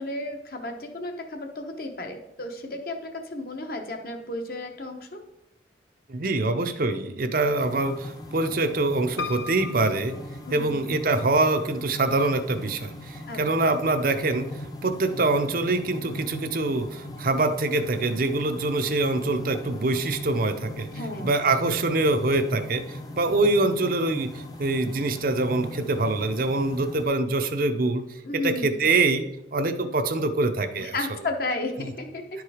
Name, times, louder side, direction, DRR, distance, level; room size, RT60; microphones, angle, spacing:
voice 1, 0.0-5.2 10.4-10.8 13.3-13.4 20.9-21.3 28.2-28.8 30.8-32.4, left 2 dB, 50° left, 4 dB, 1.0 m, -33 dB
voice 2, 6.1-10.2 10.5-20.9 21.2-28.0 28.3-29.3 29.5-30.9 31.8-31.9 32.3-32.4, right 2 dB, 50° right, 8 dB, 0.6 m, -24 dB
sound 1, 7.6-27.1, left 1 dB, 20° left, 0.7 m, -39 dB
Piano, 9.2-11.2 11.8-12.5 12.8-12.9 13.1-13.2, left 5 dB, 80° left, 0.5 m, -37 dB
10.5 x 4.7 x 4.9 m, 0.89 s
head